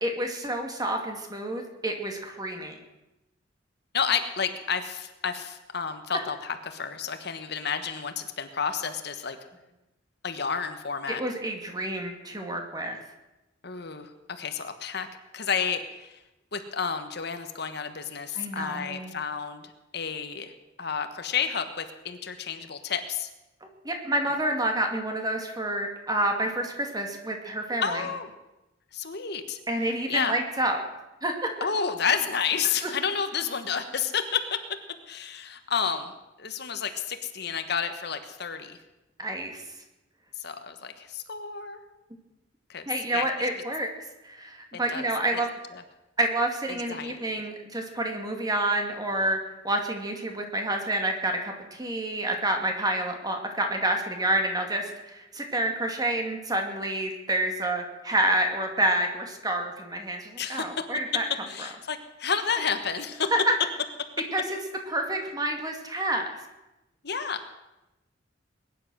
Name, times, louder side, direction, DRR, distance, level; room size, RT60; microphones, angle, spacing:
voice 1, 0.0-2.7 11.1-13.0 18.3-19.1 23.8-28.0 29.7-30.8 31.2-31.3 39.2-39.6 42.9-43.9 44.2-45.5 46.2-49.4 49.6-61.2 61.6-61.7 63.3-63.4 64.3-64.4 64.9-66.3, right 1 dB, 20° right, 3 dB, 2.4 m, -28 dB
voice 2, 3.9-9.4 10.2-11.2 13.6-15.1 15.3-16.2 16.5-19.6 19.9-20.5 20.8-23.3 27.8-28.3 28.9-29.6 30.1-30.4 31.6-34.6 35.1-36.1 36.4-38.8 40.4-41.8 42.7-42.9 43.1-43.3 44.7-45.1 45.3-45.4 45.7-45.8 46.9-47.3 60.4-60.7 61.5-63.3 67.0-67.5, left 6 dB, 60° left, 8 dB, 1.3 m, -30 dB
21.0 x 10.5 x 6.3 m, 1.0 s
head